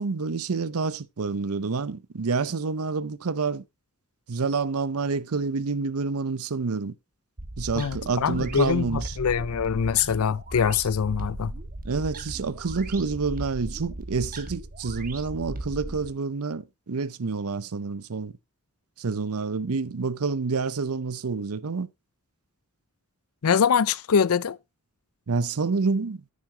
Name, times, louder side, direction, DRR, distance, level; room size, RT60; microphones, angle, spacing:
voice 1, 0.0-3.6 4.3-6.9 7.6-9.2 11.8-18.3 19.0-21.9 25.3-26.2, right 4 dB, 75° right, 0.7 m, -28 dB
sound 1, 7.4-16.1, right 1 dB, 40° right, 1.5 m, -37 dB
voice 2, 7.8-11.5 23.4-24.6, left 7 dB, 70° left, 0.5 m, -24 dB
9.5 x 9.3 x 2.8 m
head